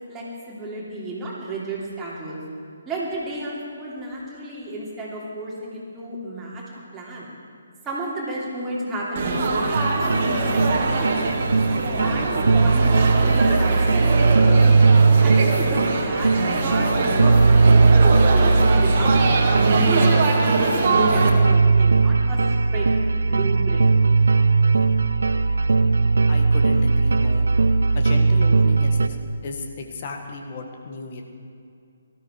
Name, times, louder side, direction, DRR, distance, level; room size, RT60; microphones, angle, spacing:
voice 1, 0.1-2.4 2.8-6.6 6.9-7.3 7.8-11.3 12.0-12.3 12.5-14.9 15.2-19.2 19.7-22.4 22.7-22.9 23.1-23.9, right 1 dB, 10° right, -6 dB, 3.3 m, -32 dB
Laughter / Chatter / Crowd, 9.1-21.3, right 3 dB, 40° right, 1.9 m, -23 dB
sound 1, 9.7-29.1, right 3 dB, 65° right, 0.6 m, -18 dB
voice 2, 26.3-27.5 27.9-29.2 29.4-31.2, left 3 dB, 40° left, 3 dB, 1.7 m, -34 dB
18.5 x 13.5 x 4.7 m, 2.5 s
figure-of-eight pair, 140°, 0 cm